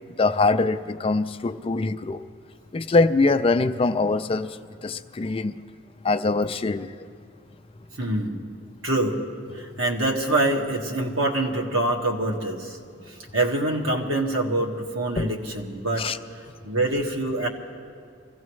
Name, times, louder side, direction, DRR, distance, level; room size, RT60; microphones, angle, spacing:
voice 1, 0.2-2.2 2.7-5.5 6.0-6.9 15.2-15.3 16.0-16.2, left 3 dB, 30° left, 10 dB, 0.4 m, -23 dB
voice 2, 8.0-8.4 8.8-9.2 9.5-12.8 13.1-17.5, right 2 dB, 85° right, 0 dB, 1.7 m, -25 dB
25.0 x 16.0 x 3.2 m, 2.3 s
head